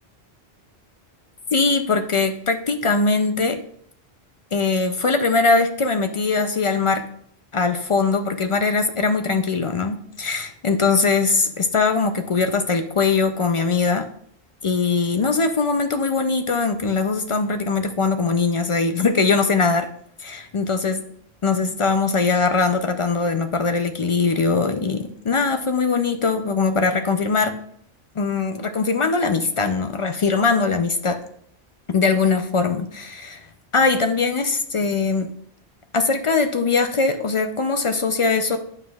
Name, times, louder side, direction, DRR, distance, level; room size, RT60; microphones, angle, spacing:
voice 1, 1.5-3.6 4.5-7.0 7.5-14.1 14.6-19.9 20.2-21.0 21.4-27.6 28.2-31.2 31.9-33.4 33.7-35.3 35.9-38.6, left 4 dB, 55° left, 7 dB, 0.3 m, -21 dB
9.4 x 5.5 x 2.3 m, 0.65 s
omnidirectional pair, 1.1 m